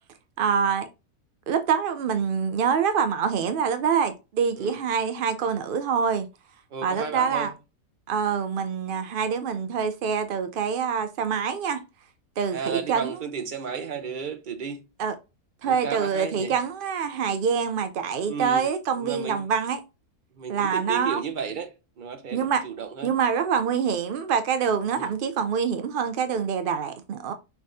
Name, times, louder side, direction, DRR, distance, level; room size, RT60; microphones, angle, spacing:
voice 1, 0.4-0.9 1.5-6.3 6.8-7.5 8.1-11.8 12.4-13.2 15.0-15.1 15.6-19.8 20.5-21.2 22.3-22.6 23.0-27.3, right 6 dB, 80° right, 0.4 m, -25 dB
voice 2, 6.7-7.5 12.5-14.8 15.6-16.5 18.3-18.7 19.0-19.5 20.3-23.1 24.9-25.1, right 6 dB, 40° right, 0.7 m, -33 dB
5.7 x 3.4 x 2.7 m
omnidirectional pair, 1.6 m